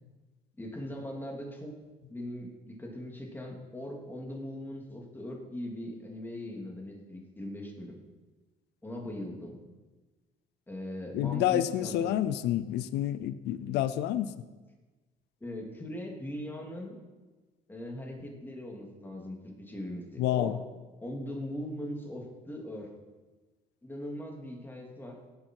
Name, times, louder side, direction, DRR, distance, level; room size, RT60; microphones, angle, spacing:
voice 1, 0.6-1.7 2.1-8.0 8.8-9.6 10.7-12.2 15.4-17.0 17.7-20.6 21.0-22.9 23.8-25.2, left 1 dB, 10° left, -1 dB, 3.0 m, -40 dB
voice 2, 11.1-14.3 20.2-20.6, left 12 dB, 85° left, 14 dB, 0.6 m, -29 dB
18.0 x 8.7 x 4.8 m, 1.3 s
cardioid pair, 110°, 17 cm